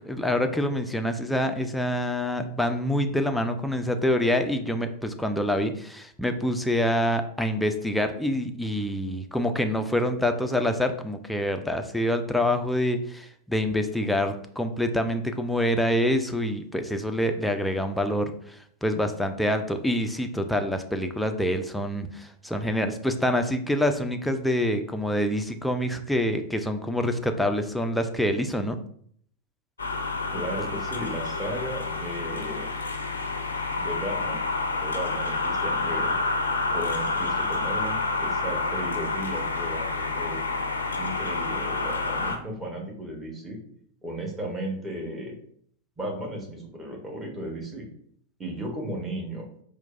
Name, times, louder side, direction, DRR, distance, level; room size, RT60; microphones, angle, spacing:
voice 1, 0.1-28.8, left 1 dB, 5° left, 6 dB, 0.3 m, -26 dB
sound 1, 29.8-42.4, left 3 dB, 75° left, 0.4 m, -29 dB
voice 2, 30.3-32.7 33.8-34.4 34.8-36.2 36.7-40.4 41.0-43.6 44.0-45.3 46.0-47.9 48.4-49.5, right 1 dB, 15° right, -1 dB, 0.9 m, -35 dB
4.4 x 2.1 x 2.4 m, 0.62 s
figure-of-eight pair, 90°, 0 cm